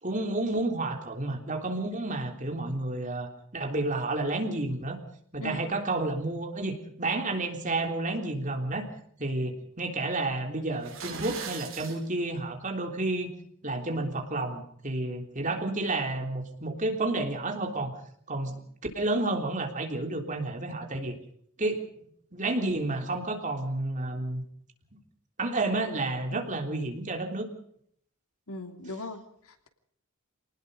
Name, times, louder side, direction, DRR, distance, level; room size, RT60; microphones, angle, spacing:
voice 1, 0.0-5.0 5.3-8.9 9.2-13.3 13.6-17.9 18.3-18.6 19.0-21.2 21.6-21.9 22.3-24.4 25.4-27.5, right 2 dB, 35° right, 4 dB, 3.5 m, -30 dB
sound 1, 10.7-12.0, right 6 dB, 60° right, 5.7 m, -39 dB
voice 2, 28.5-29.7, left 2 dB, 75° left, 7 dB, 2.9 m, -39 dB
26.0 x 19.5 x 5.1 m, 0.65 s
head